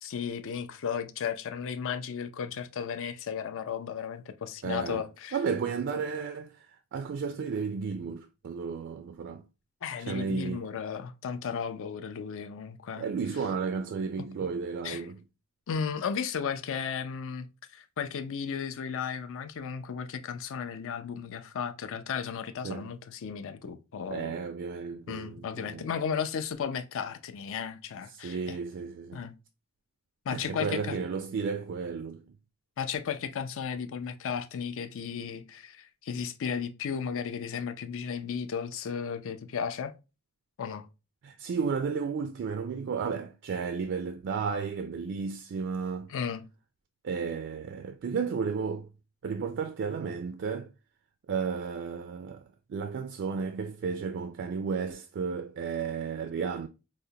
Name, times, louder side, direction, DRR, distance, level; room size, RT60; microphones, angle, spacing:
voice 1, 0.0-5.4 9.8-13.1 14.2-14.3 14.8-15.1 15.7-17.5 17.7-24.3 25.1-28.6 29.1-29.3 30.3-31.0 32.8-39.9 40.6-40.9 46.1-46.4, left 7 dB, 65° left, 0.4 m, -34 dB
voice 2, 4.6-5.0 5.3-6.7 6.9-9.4 10.0-10.7 13.0-15.2 22.6-22.9 24.1-25.9 28.1-29.2 30.3-32.2 41.2-46.1 47.0-48.9 49.2-50.7 51.3-52.4 52.7-56.7, right 5 dB, 55° right, 0.3 m, -33 dB
4.8 x 2.1 x 2.7 m
head